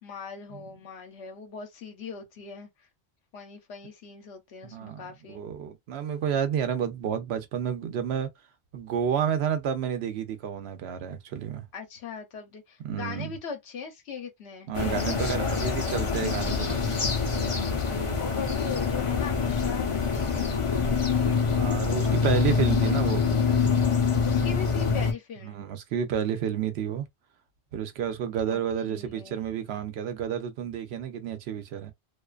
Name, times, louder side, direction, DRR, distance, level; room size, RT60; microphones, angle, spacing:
voice 1, 0.0-2.9 3.3-5.4 11.7-15.9 17.8-21.0 21.9-23.4 24.2-25.6 28.5-28.6 28.9-29.8, left 6 dB, 75° left, 1.0 m, -40 dB
voice 2, 4.6-5.0 5.3-8.3 8.7-11.6 12.8-13.3 14.7-17.0 21.5-23.4 25.4-27.1 27.7-31.9, right 8 dB, 75° right, 0.8 m, -30 dB
sound 1, 14.7-25.1, left 5 dB, 40° left, 0.5 m, -25 dB
2.5 x 2.3 x 2.3 m
omnidirectional pair, 1.1 m